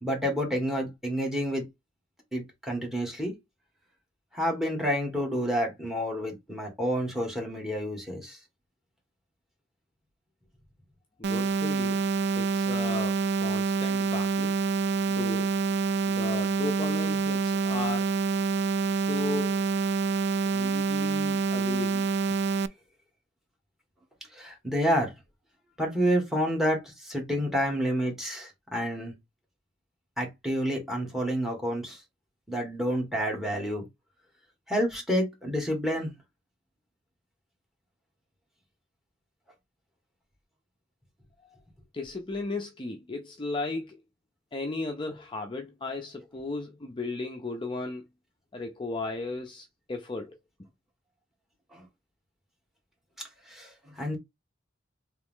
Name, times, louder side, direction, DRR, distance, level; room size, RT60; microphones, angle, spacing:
voice 1, 0.0-1.7 2.3-3.3 4.3-8.4 24.3-25.1 25.8-29.1 30.2-32.0 32.5-33.9 34.7-36.1 51.7-51.8 53.5-54.2, equal, ahead, 1.6 m, -29 dB
voice 2, 11.2-12.0 12.3-14.6 15.1-15.6 16.1-18.1 18.9-19.7 20.5-22.4 41.9-44.0 44.5-48.0 48.5-50.3, left 3 dB, 25° left, 0.5 m, -35 dB
sound 1, 11.2-22.7, right 4 dB, 60° right, 0.3 m, -27 dB
3.6 x 3.0 x 3.6 m
head